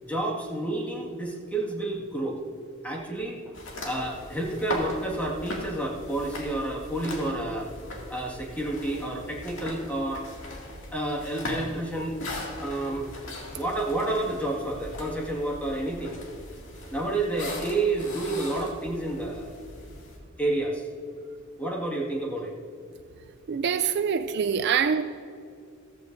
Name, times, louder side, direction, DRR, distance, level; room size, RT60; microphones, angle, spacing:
voice 1, 0.0-2.4 2.8-3.4 3.8-7.7 8.1-10.2 10.9-12.2 12.6-13.1 13.5-16.1 16.9-19.5 20.4-20.9 21.6-22.6, right 2 dB, 5° left, -2 dB, 1.9 m, -30 dB
sound 1, 3.5-20.2, left 1 dB, 65° left, 2.3 m, -39 dB
voice 2, 23.5-25.0, right 7 dB, 55° right, 10 dB, 0.4 m, -25 dB
15.0 x 14.5 x 2.6 m, 2.5 s
head